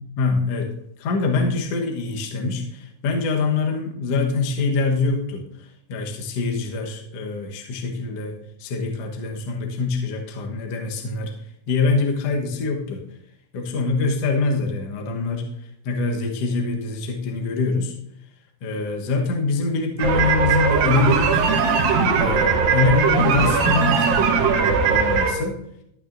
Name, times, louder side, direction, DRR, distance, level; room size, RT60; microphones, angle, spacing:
voice 1, 0.2-0.7 1.0-8.3 8.6-11.3 11.7-13.0 13.5-15.5 15.8-17.9 18.6-21.6 22.2-25.6, left 3 dB, 75° left, 1 dB, 1.4 m, -24 dB
sound 1, 20.0-25.3, right 5 dB, 65° right, 2.6 m, -19 dB
21.0 x 8.8 x 2.7 m, 0.77 s
omnidirectional pair, 5.0 m